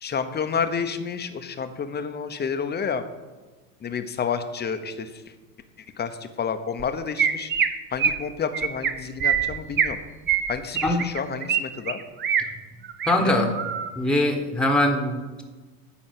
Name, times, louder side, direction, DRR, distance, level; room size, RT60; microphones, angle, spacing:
voice 1, 0.0-3.0 3.8-5.1 6.0-7.5 7.9-10.0 10.5-12.0 13.2-13.5, left 6 dB, 20° left, 9 dB, 0.9 m, -29 dB
Chirp tweet, 6.8-6.9 7.2-7.7 8.0-8.2 8.5-8.9 9.2-9.9 10.3-11.6 11.9-12.4 12.8-13.1 13.5-13.9, right 8 dB, 25° right, 0.8 m, -23 dB
voice 2, 13.1-13.5 14.0-15.4, left 1 dB, ahead, 3 dB, 1.3 m, -22 dB
10.0 x 4.2 x 7.7 m, 1.3 s
hypercardioid pair, 100°, 46 cm